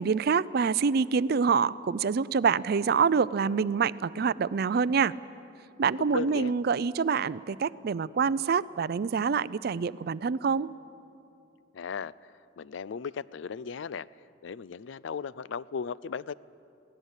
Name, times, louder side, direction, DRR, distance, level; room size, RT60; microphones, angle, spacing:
voice 1, 0.0-5.1 5.8-10.7, right 5 dB, 55° right, 17 dB, 0.4 m, -26 dB
voice 2, 6.0-6.6 11.7-14.1 14.4-16.3, left 6 dB, 75° left, 20 dB, 0.4 m, -36 dB
23.0 x 17.0 x 8.1 m, 2.7 s
head